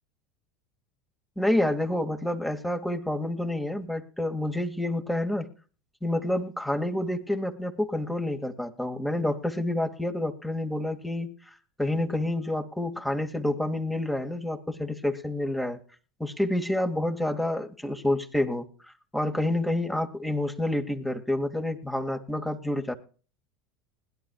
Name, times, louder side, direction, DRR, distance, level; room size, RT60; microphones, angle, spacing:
voice 1, 1.4-5.5 6.0-15.8 16.2-18.7 19.1-22.9, left 1 dB, 5° left, 5 dB, 2.2 m, -28 dB
21.0 x 11.5 x 2.4 m, 0.38 s
hypercardioid pair, 85°, 0 cm